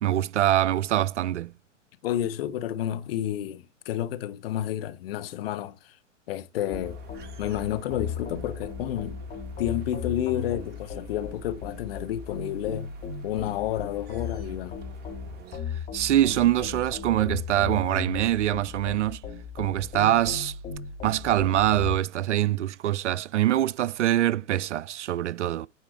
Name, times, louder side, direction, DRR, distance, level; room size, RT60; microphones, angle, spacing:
voice 1, 0.0-1.5 15.9-19.2 19.6-20.6 21.0-25.7, right 13 dB, 70° right, 0.5 m, -24 dB
voice 2, 2.0-6.0 6.3-7.0 7.4-9.2 9.6-12.9 13.2-14.8, left 11 dB, 50° left, 0.9 m, -30 dB
sound 1, 6.7-22.0, left 6 dB, 20° left, 1.8 m, -36 dB
sound 2, 6.8-15.6, right 6 dB, 25° right, 1.6 m, -51 dB
9.4 x 4.5 x 3.2 m
figure-of-eight pair, 110°, 37 cm